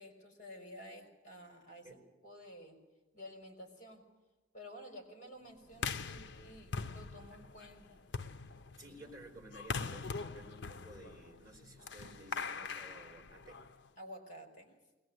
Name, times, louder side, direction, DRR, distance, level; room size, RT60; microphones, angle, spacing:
voice 1, 0.0-2.8 3.1-4.0 4.5-8.0 14.0-14.7, equal, 40° left, 3 dB, 4.8 m, -52 dB
sound 1, 5.7-13.9, left 5 dB, 65° left, 0.7 m, -42 dB
voice 2, 8.8-13.6, right 1 dB, 20° right, 2 dB, 4.7 m, -54 dB
21.0 x 20.0 x 8.0 m, 1.1 s
head